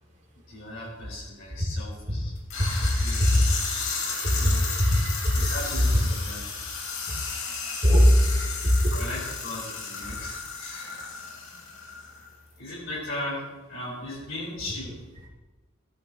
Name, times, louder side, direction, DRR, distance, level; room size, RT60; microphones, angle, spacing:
voice 1, 0.5-2.3 3.0-3.4 4.3-4.7 5.5-6.4 6.7-6.9 8.9-11.1 12.6-13.4 13.7-14.9, left 1 dB, 65° left, -6 dB, 4.5 m, -37 dB
sound 1, 2.5-12.3, left 4 dB, 85° left, 3.2 m, -34 dB
voice 2, 4.4-5.9 7.8-8.4, equal, 35° right, -2 dB, 2.4 m, -20 dB
15.5 x 13.0 x 3.0 m, 1.2 s
head